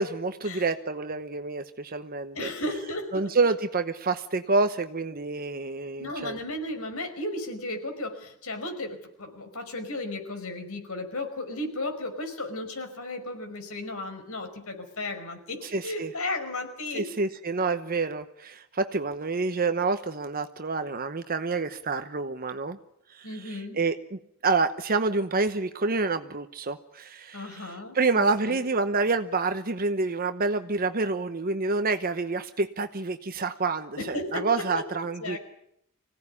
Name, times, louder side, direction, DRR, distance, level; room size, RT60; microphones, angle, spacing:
voice 1, 0.0-2.5 3.1-6.4 15.6-16.1 16.9-22.8 23.1-35.4, right 3 dB, 40° right, 9 dB, 1.0 m, -28 dB
voice 2, 2.3-3.3 6.0-17.1 23.2-23.8 27.3-28.6 34.0-34.8 35.2-35.4, left 2 dB, 70° left, 5 dB, 5.4 m, -34 dB
25.5 x 17.0 x 9.8 m, 0.76 s
head